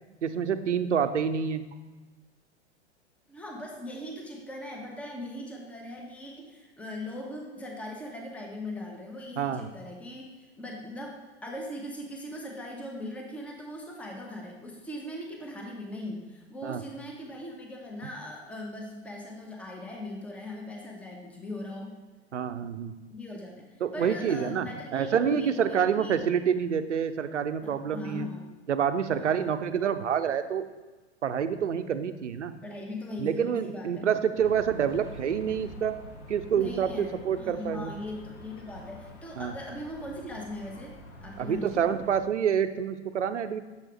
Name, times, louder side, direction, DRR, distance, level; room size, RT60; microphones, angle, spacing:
voice 1, 0.2-1.6 9.4-9.6 16.6-16.8 22.3-22.9 23.8-24.7 24.9-28.3 28.7-30.7 31.2-32.5 33.2-36.0 36.3-37.9 39.4-39.5 41.4-43.6, right 8 dB, 85° right, 10 dB, 0.5 m, -27 dB
voice 2, 3.3-22.0 23.1-26.2 27.6-28.5 29.1-29.5 32.6-34.1 36.6-40.9 41.2-41.8, left 1 dB, 5° left, 0 dB, 0.8 m, -40 dB
sound 1, 34.3-42.2, left 1 dB, 80° left, 1.1 m, -47 dB
6.9 x 4.6 x 3.3 m, 1.2 s
figure-of-eight pair, 100°, 35 cm